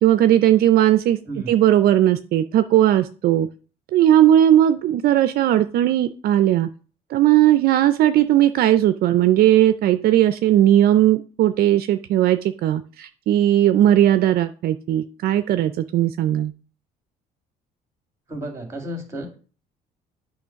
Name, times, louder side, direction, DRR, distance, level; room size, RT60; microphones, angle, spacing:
voice 1, 0.0-1.2 1.5-3.5 3.9-6.7 7.1-16.5, right 12 dB, 65° right, 11 dB, 0.4 m, -17 dB
voice 2, 18.3-19.4, right 1 dB, 15° right, 4 dB, 2.1 m, -32 dB
8.7 x 3.1 x 5.7 m, 0.38 s
cardioid pair, 110°, 17 cm